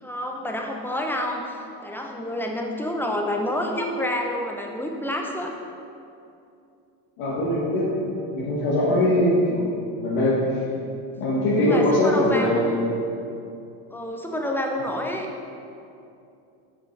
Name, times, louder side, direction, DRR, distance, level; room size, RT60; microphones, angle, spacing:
voice 1, 0.0-5.5 8.8-9.1 11.6-12.8 13.9-15.3, left 1 dB, 5° left, 2 dB, 0.5 m, -28 dB
voice 2, 7.2-9.7 10.0-10.4 11.2-12.9, left 1 dB, 65° left, -7 dB, 1.4 m, -22 dB
6.3 x 6.0 x 3.3 m, 2.6 s
supercardioid pair, 95°, 47 cm